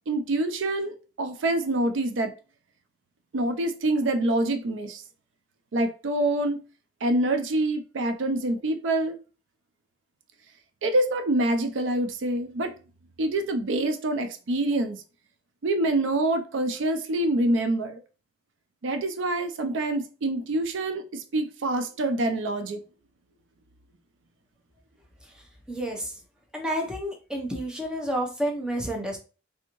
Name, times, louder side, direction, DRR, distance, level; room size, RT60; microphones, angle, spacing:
voice 1, 0.1-2.3 3.3-5.0 5.7-6.6 7.0-9.2 10.8-12.7 13.2-15.0 15.6-18.0 18.8-22.8, right 1 dB, 70° right, 0.4 m, -26 dB
voice 2, 25.7-26.1 26.5-29.2, equal, 5° right, 0.6 m, -30 dB
3.4 x 2.6 x 2.9 m
head